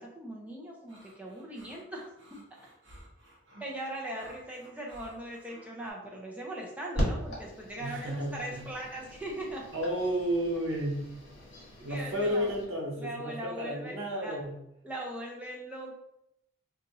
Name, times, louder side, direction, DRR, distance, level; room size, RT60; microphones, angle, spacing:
voice 1, 0.0-2.1 3.6-9.6 11.8-12.5 13.0-14.4 14.8-16.0, right 1 dB, 5° right, -2 dB, 0.5 m, -40 dB
sound 1, 0.9-5.9, right 1 dB, 60° right, 0.8 m, -55 dB
sound 2, 6.9-12.6, equal, 65° left, 1.4 m, -38 dB
voice 2, 7.8-8.6 9.7-11.0 11.8-14.5, equal, 85° right, -2 dB, 1.0 m, -32 dB
2.7 x 2.4 x 4.0 m, 0.82 s
head